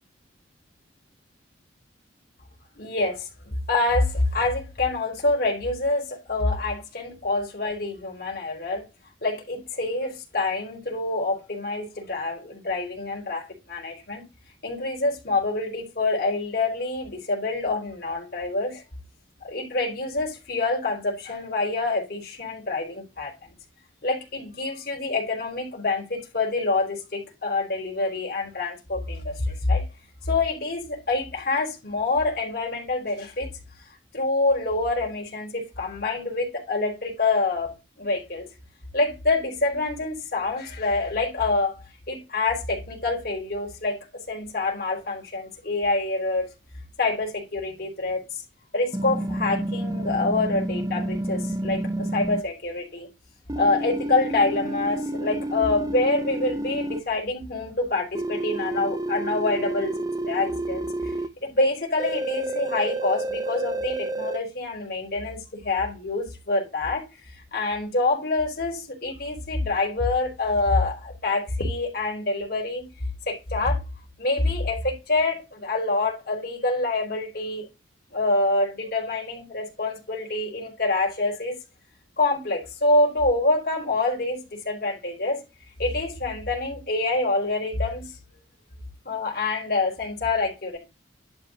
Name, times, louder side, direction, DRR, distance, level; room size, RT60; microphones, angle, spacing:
voice 1, 2.8-8.9 9.2-14.2 14.6-18.8 19.4-23.3 24.0-29.8 30.2-33.5 34.1-38.5 38.9-41.7 42.1-46.5 47.0-48.2 48.7-53.1 53.5-61.1 61.4-67.1 67.5-72.9 73.3-73.8 74.2-77.7 78.1-81.6 82.2-85.4 85.8-88.1 89.0-90.8, left 2 dB, 50° left, 4.4 m, -26 dB
sound 1, 48.9-52.4 53.5-57.0 58.1-61.3 62.0-64.4, right 1 dB, 20° right, 0.6 m, -29 dB
11.5 x 4.9 x 3.9 m
head